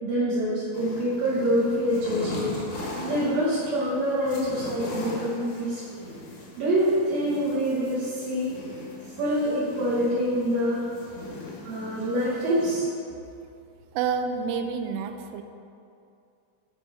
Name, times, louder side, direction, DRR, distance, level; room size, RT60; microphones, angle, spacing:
voice 1, 0.0-2.5 3.0-6.0 6.6-8.5 9.2-10.9 11.6-12.9, equal, 65° right, -9 dB, 2.4 m, -26 dB
sound 1, 0.7-12.7, left 1 dB, 80° left, 1.5 m, -39 dB
voice 2, 13.9-15.4, right 6 dB, 90° right, 6 dB, 2.4 m, -28 dB
11.5 x 5.1 x 3.4 m, 2.6 s
omnidirectional pair, 5.4 m